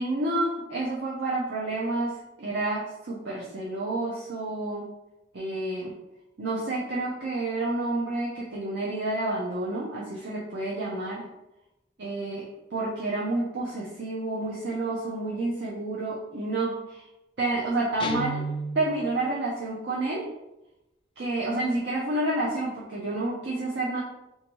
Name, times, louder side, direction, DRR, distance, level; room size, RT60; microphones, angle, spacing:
voice 1, 0.0-4.9 5.3-5.9 6.4-11.3 12.0-17.0 17.4-18.4 18.7-20.3 21.2-24.0, right 2 dB, 65° right, -5 dB, 0.6 m, -29 dB
Guitar, 18.0-19.2, right 1 dB, 30° left, 0.3 m, -32 dB
3.4 x 2.8 x 3.0 m, 0.92 s
head